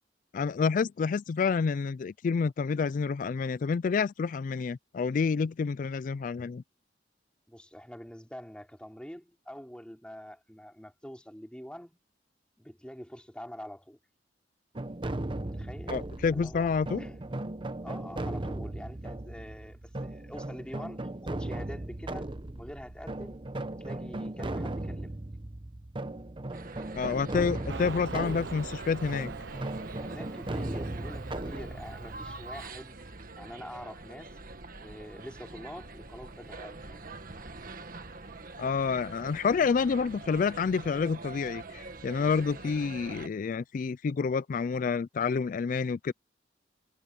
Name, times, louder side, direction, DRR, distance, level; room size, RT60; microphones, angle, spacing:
voice 1, 0.3-6.6 15.9-17.0 26.9-29.3 38.6-46.1, left 5 dB, 45° left, 0.3 m, -29 dB
voice 2, 7.5-12.0 12.6-14.0 15.4-16.0 16.3-17.2 17.8-23.5 23.8-25.1 30.0-33.0 33.4-34.4 34.8-37.1, equal, 5° left, 3.1 m, -45 dB
sound 1, 14.7-33.5, right 1 dB, 30° right, 0.9 m, -37 dB
sound 2, 26.5-43.3, right 3 dB, 50° right, 1.7 m, -45 dB
Motorcycle, 27.7-32.7, right 4 dB, 80° right, 0.9 m, -44 dB
head